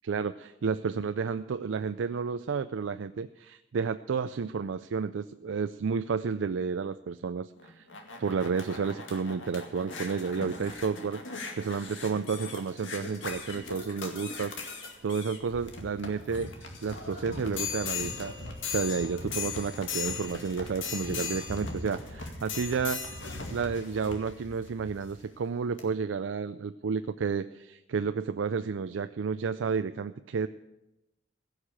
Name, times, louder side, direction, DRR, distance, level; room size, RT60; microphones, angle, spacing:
voice 1, 0.0-7.9 8.2-16.5 16.8-18.3 18.7-23.0 23.5-30.5, right 5 dB, 85° right, 11 dB, 0.4 m, -31 dB
sound 1, 7.6-25.2 25.8-25.9, left 4 dB, 85° left, 2.1 m, -38 dB
16.0 x 6.6 x 8.8 m, 0.96 s
head